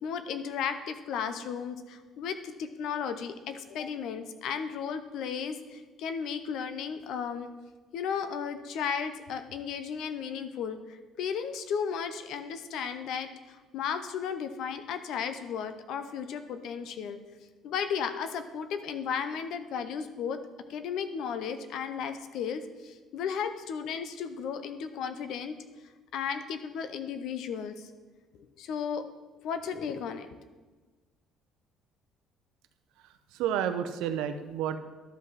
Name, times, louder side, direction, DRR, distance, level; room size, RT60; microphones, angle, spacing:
voice 1, 0.0-7.5 7.9-17.2 17.6-20.4 20.7-25.6 26.1-27.9 28.6-29.0 29.4-30.3, left 7 dB, 70° left, 10 dB, 0.7 m, -34 dB
voice 2, 33.0-34.8, right 9 dB, 85° right, 9 dB, 0.6 m, -31 dB
12.0 x 5.3 x 4.1 m, 1.3 s
cardioid pair, 115°, 0 cm